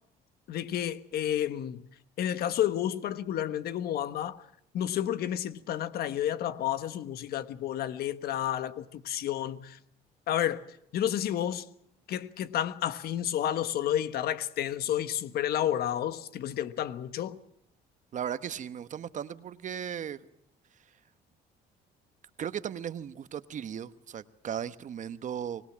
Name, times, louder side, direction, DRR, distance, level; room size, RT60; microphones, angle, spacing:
voice 1, 0.5-1.8 2.2-4.4 4.7-9.8 10.3-10.6 10.9-11.6 12.1-17.4, left 11 dB, 65° left, 1.4 m, -31 dB
voice 2, 18.1-20.2 22.4-25.6, right 9 dB, 45° right, 1.2 m, -36 dB
25.0 x 20.0 x 7.4 m
cardioid pair, 110°, 17 cm